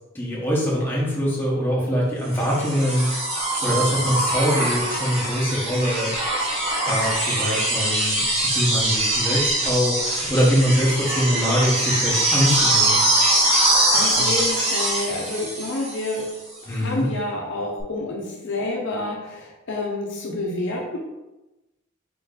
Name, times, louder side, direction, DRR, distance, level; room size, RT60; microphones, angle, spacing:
voice 1, 0.1-3.1 3.6-6.1 6.9-13.1 14.2-14.3 16.7-17.0, equal, 10° left, -6 dB, 1.1 m, -23 dB
sound 1, 2.3-16.3 17.8-17.9, right 1 dB, 30° right, 1.2 m, -23 dB
voice 2, 13.6-16.3 16.6-21.0, left 2 dB, 60° left, -1 dB, 0.7 m, -29 dB
4.1 x 3.1 x 3.8 m, 1.0 s
head